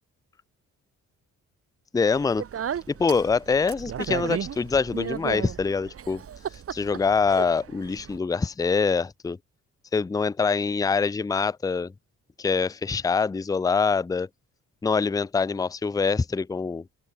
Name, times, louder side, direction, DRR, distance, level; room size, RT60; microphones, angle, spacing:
voice 1, 1.9-2.4 2.9-6.2 6.7-9.4 9.9-11.9 12.4-14.3 14.8-16.8, left 5 dB, 10° left, 0.5 m, -24 dB
Speech, 2.1-8.2, right 8 dB, 50° right, 1.7 m, -35 dB
open air
cardioid pair, 90°, 30 cm